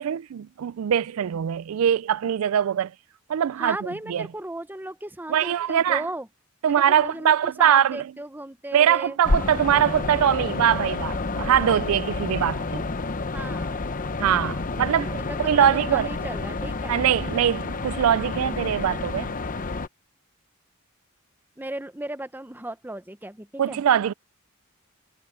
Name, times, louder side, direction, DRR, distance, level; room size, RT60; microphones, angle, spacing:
voice 1, 0.0-2.9 3.3-4.3 5.3-6.0 6.6-8.1 8.7-12.8 14.2-16.1 16.9-19.3 23.6-24.1, right 9 dB, 90° right, 0.4 m, -22 dB
voice 2, 3.6-6.3 6.7-9.2 13.3-13.8 15.2-17.0 21.6-23.8, right 1 dB, 10° right, 0.8 m, -35 dB
sound 1, 9.2-19.9, left 3 dB, 40° left, 0.8 m, -29 dB
head